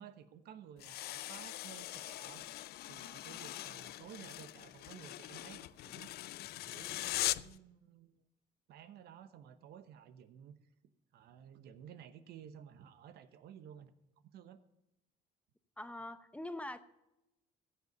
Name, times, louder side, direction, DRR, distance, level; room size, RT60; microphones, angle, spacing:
voice 1, 0.0-2.4 2.9-6.1 6.6-8.2 8.7-10.6 11.1-13.9 14.3-14.6, right 9 dB, 70° right, 12 dB, 1.0 m, -54 dB
sound 1, 0.8-7.6, left 16 dB, 70° left, 0.4 m, -41 dB
voice 2, 15.8-16.8, left 1 dB, 5° left, 11 dB, 0.7 m, -43 dB
15.0 x 6.9 x 5.5 m, 0.90 s
cardioid pair, 110°, 17 cm